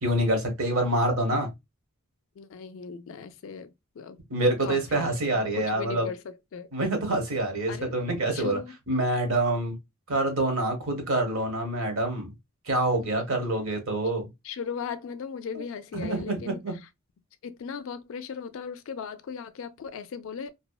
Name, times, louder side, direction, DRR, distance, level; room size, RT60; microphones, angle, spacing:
voice 1, 0.0-1.5 4.3-6.1 6.7-8.6 8.9-9.7 10.1-12.3 12.7-14.3 15.5-15.6 15.9-16.8, right 1 dB, 65° right, 0.9 m, -26 dB
voice 2, 2.4-4.2 4.6-6.7 7.7-7.9 8.3-8.7 14.4-16.6 17.4-20.5, left 6 dB, 60° left, 0.3 m, -37 dB
2.7 x 2.1 x 2.2 m
head